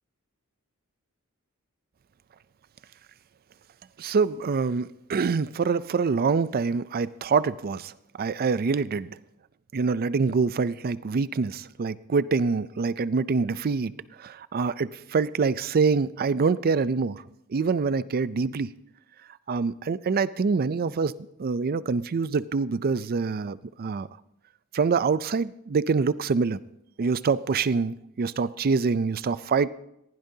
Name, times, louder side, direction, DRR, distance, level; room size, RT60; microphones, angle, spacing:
voice 1, 4.0-9.2 9.7-13.9 14.2-17.2 17.5-18.7 19.5-21.1 21.4-24.1 24.7-26.6 27.0-29.7, right 4 dB, 45° right, 0.4 m, -25 dB
19.5 x 15.5 x 2.8 m
head